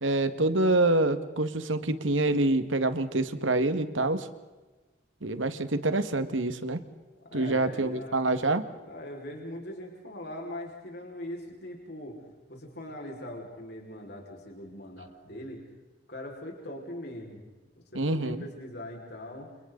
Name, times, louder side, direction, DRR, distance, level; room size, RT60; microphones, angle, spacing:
voice 1, 0.0-4.3 5.2-6.8 7.3-8.7 17.9-18.4, right 2 dB, 85° right, 10 dB, 1.9 m, -26 dB
voice 2, 7.2-8.5 8.8-12.2 12.5-15.6 16.1-17.4 17.9-19.5, left 1 dB, 60° left, 0 dB, 5.3 m, -41 dB
29.5 x 29.5 x 4.0 m, 1.2 s
head